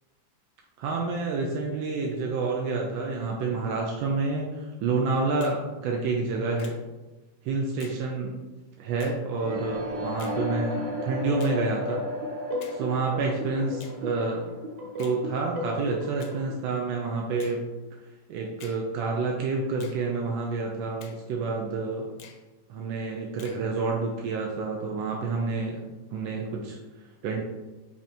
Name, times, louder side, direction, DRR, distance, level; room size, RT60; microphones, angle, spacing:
voice 1, 0.8-6.8 7.4-8.3 8.8-12.0 12.7-14.6 15.0-17.6 18.3-22.1 22.7-25.8 26.1-26.8 27.2-27.4, right 3 dB, 85° right, -1 dB, 1.3 m, -28 dB
Finger snapping, 5.4-5.6 6.6-6.8 7.8-8.0 9.0-9.2 10.2-10.4 11.4-11.6 12.6-12.8 13.8-14.0 15.0-15.2 16.2-16.4 17.4-17.6 18.6-18.8 19.8-20.0 21.0-21.2 22.2-22.4 23.4-23.6, left 6 dB, 75° left, 0.8 m, -49 dB
sound 1, 9.3-15.3, left 1 dB, 55° right, 1.5 m, -35 dB
sound 2, 10.3-16.5, left 1 dB, 70° right, 1.2 m, -37 dB
5.1 x 2.9 x 2.6 m, 1.1 s
omnidirectional pair, 2.1 m